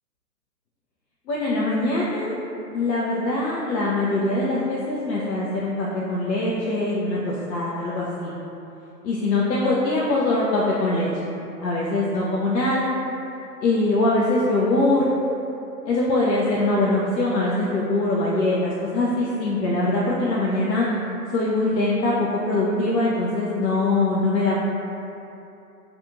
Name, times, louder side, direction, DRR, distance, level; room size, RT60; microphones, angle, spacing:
voice 1, 1.3-2.3 2.7-8.3 9.0-11.1 11.6-12.9 13.6-15.1 15.9-20.9 21.3-24.5, left 2 dB, 85° left, -6 dB, 0.6 m, -22 dB
2.8 x 2.4 x 2.4 m, 2.8 s
hypercardioid pair, 180°, 49 cm